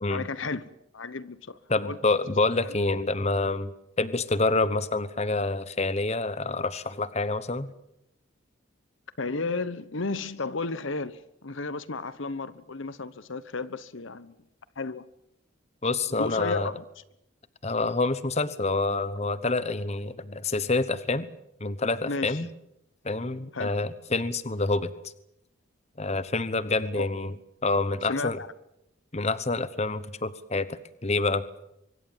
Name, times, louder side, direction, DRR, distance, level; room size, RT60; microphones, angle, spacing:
voice 1, 0.1-0.6 0.9-2.2 2.6-2.7 9.2-14.4 14.8-15.1 16.1-16.8 22.0-22.4 23.5-23.8 26.8-27.1 28.1-28.5, left 3 dB, 70° left, 1.1 m, -33 dB
voice 2, 1.7-7.7 15.8-16.7 17.6-21.3 21.6-22.5 23.0-24.9 26.0-27.3 27.6-28.4 29.1-31.4, left 3 dB, 30° left, 1.0 m, -27 dB
24.5 x 24.0 x 7.4 m
head